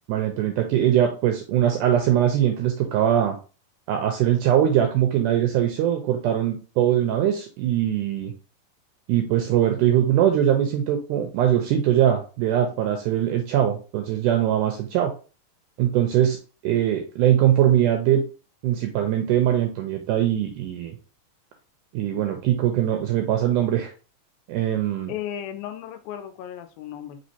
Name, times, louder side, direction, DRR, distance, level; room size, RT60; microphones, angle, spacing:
voice 1, 0.1-3.4 3.9-8.3 9.1-15.1 15.8-16.4 16.6-18.2 18.6-20.9 21.9-23.9 24.5-25.1, right 11 dB, 85° right, 4 dB, 1.8 m, -21 dB
voice 2, 25.1-27.2, left 10 dB, 80° left, 9 dB, 2.2 m, -35 dB
5.4 x 3.1 x 2.7 m, 0.34 s
omnidirectional pair, 4.1 m